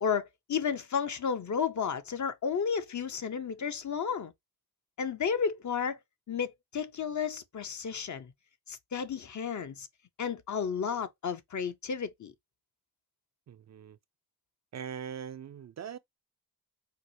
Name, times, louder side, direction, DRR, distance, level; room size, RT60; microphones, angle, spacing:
voice 1, 0.0-4.3 5.0-6.0 6.3-8.3 8.7-9.9 10.2-12.3, left 6 dB, 50° left, 0.6 m, -32 dB
voice 2, 13.5-14.0 14.7-16.0, right 8 dB, 45° right, 0.4 m, -41 dB
4.6 x 2.0 x 2.6 m
cardioid pair, 50°, 37 cm